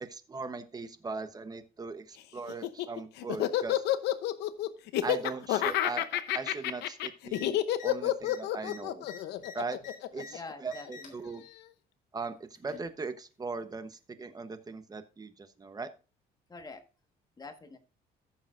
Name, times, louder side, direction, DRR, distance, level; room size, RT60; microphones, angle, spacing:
voice 1, 0.0-3.8 5.0-9.0 9.5-9.8 10.1-11.4 12.1-15.9, right 4 dB, 20° right, 10 dB, 1.1 m, -39 dB
Laughter, 2.5-10.9, left 13 dB, 80° left, 0.9 m, -29 dB
sound 1, 7.3-7.5 7.7-7.9 8.2-10.3 10.7-11.2 12.2-12.9 13.9-14.0, left 4 dB, 55° left, 3.6 m, -48 dB
voice 2, 10.3-11.4 16.5-16.8 17.4-17.8, left 3 dB, 25° left, 7 dB, 1.6 m, -46 dB
15.0 x 7.1 x 2.6 m, 0.33 s
cardioid pair, 110°, 17 cm